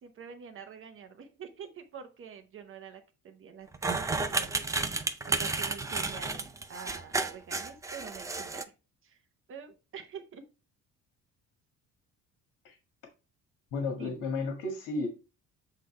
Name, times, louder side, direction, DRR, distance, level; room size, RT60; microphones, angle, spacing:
voice 1, 0.0-8.6 9.0-9.2 9.5-10.4 14.0-14.1, right 7 dB, 40° right, 0.8 m, -46 dB
sound 1, 3.7-8.6, right 3 dB, 10° right, 0.4 m, -32 dB
voice 2, 13.7-15.1, left 3 dB, 90° left, 1.7 m, -33 dB
7.8 x 3.8 x 3.2 m
cardioid pair, 170°, 32 cm